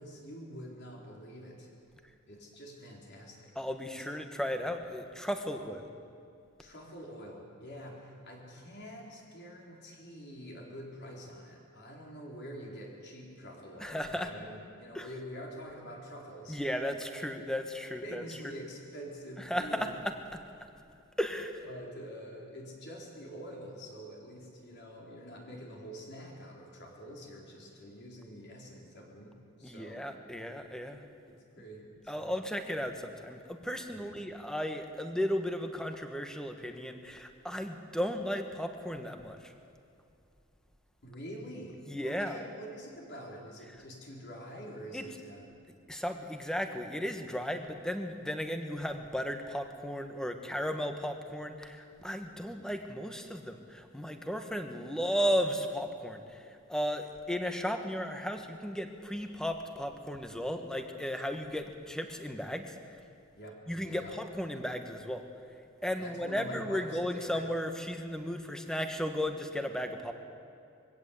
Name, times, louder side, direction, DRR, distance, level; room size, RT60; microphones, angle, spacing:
voice 1, 0.0-1.7 2.3-3.5 5.5-5.8 6.6-16.6 18.0-19.9 21.6-30.0 30.9-31.0 31.3-32.4 33.9-34.2 41.0-45.4 52.3-52.5 63.3-64.2 66.0-67.5, equal, 55° left, -2 dB, 4.4 m, -46 dB
voice 2, 3.5-5.8 13.8-14.3 14.9-15.1 16.5-18.2 19.5-19.9 21.2-21.6 29.6-31.0 32.1-39.5 41.9-42.4 44.9-45.0 45.9-56.4 56.7-62.7 63.7-65.2 65.8-70.1, equal, 5° left, 6 dB, 1.4 m, -35 dB
22.5 x 16.5 x 8.4 m, 2.5 s
head